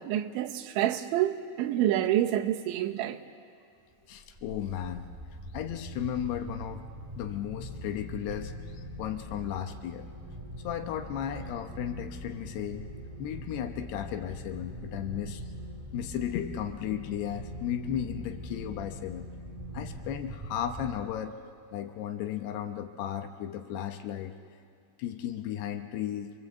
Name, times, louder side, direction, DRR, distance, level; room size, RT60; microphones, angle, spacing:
voice 1, 0.0-3.2, right 12 dB, 90° right, 3.4 m, -28 dB
voice 2, 4.1-5.1 5.5-6.8 7.2-10.1 10.6-12.9 13.2-15.5 15.9-19.3 19.7-21.4 21.7-24.3 25.0-26.3, left 10 dB, 75° left, 2.8 m, -35 dB
sound 1, 4.1-21.5, equal, 15° right, 1.5 m, -42 dB
27.5 x 23.5 x 8.0 m
omnidirectional pair, 5.2 m